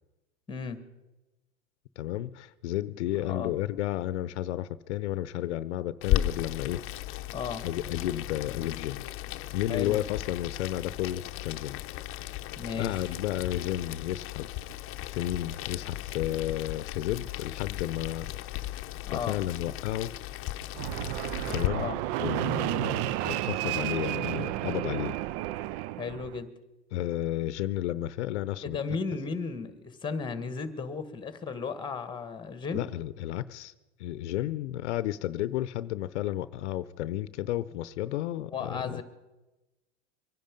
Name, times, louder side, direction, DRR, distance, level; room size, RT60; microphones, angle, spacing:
voice 1, 0.5-0.8 3.2-3.5 7.3-7.6 9.7-10.0 12.6-13.1 19.1-19.4 21.7-22.0 26.0-26.5 28.6-32.8 38.5-39.0, left 5 dB, 15° left, 1.6 m, -35 dB
voice 2, 2.0-6.8 7.6-9.0 9.5-11.8 12.8-14.5 15.1-18.3 18.6-18.7 19.1-20.1 21.5-21.9 22.2-25.2 26.9-28.8 32.7-33.7 34.0-39.0, left 14 dB, 80° left, 0.7 m, -32 dB
Boiling, 6.0-21.7, left 15 dB, 40° left, 0.8 m, -36 dB
Fixed-wing aircraft airplane, 20.7-26.4, right 15 dB, 50° right, 0.4 m, -31 dB
24.0 x 10.5 x 5.3 m
supercardioid pair, 120°, 34 cm